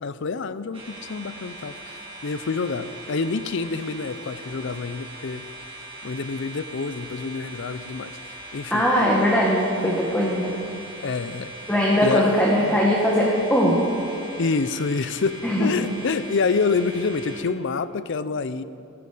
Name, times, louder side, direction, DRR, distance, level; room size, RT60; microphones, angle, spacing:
voice 1, 0.0-5.4 6.0-8.1 8.5-8.8 11.0-11.5 12.0-12.3 12.6-12.8 14.4-18.6, left 4 dB, 60° left, 14 dB, 0.5 m, -27 dB
sound 1, 0.7-17.4, right 1 dB, 25° right, 2.0 m, -40 dB
voice 2, 8.7-10.5 11.7-13.8 15.4-15.7, equal, 5° left, -4 dB, 1.4 m, -20 dB
17.5 x 10.5 x 5.0 m, 2.6 s
head